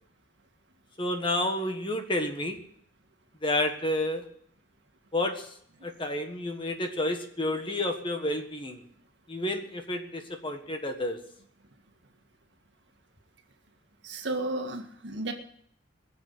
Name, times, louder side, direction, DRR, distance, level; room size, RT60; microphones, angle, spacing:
voice 1, 1.0-2.6 3.4-4.2 5.1-5.5 5.8-8.8 9.3-11.2, left 1 dB, 25° left, 5 dB, 1.5 m, -30 dB
voice 2, 14.0-15.3, right 2 dB, 60° right, 4 dB, 1.9 m, -33 dB
21.5 x 7.2 x 8.4 m, 0.68 s
head